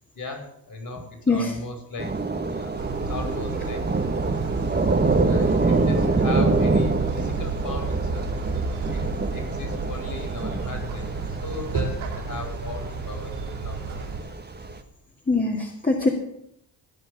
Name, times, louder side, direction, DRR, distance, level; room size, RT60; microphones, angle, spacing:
voice 1, 0.1-2.1 2.4-2.7 3.1-3.9 5.2-8.3 8.9-9.0 9.3-13.4 13.6-14.3, left 3 dB, 45° left, 4 dB, 5.6 m, -37 dB
Thunder / Rain, 2.0-14.8, right 3 dB, 20° right, 1.6 m, -26 dB
sound 1, 2.8-14.2, right 4 dB, 85° right, 2.8 m, -31 dB
voice 2, 15.3-16.1, left 3 dB, 20° left, -2 dB, 2.6 m, -22 dB
15.5 x 5.3 x 9.7 m, 0.75 s
supercardioid pair, 60°, 46 cm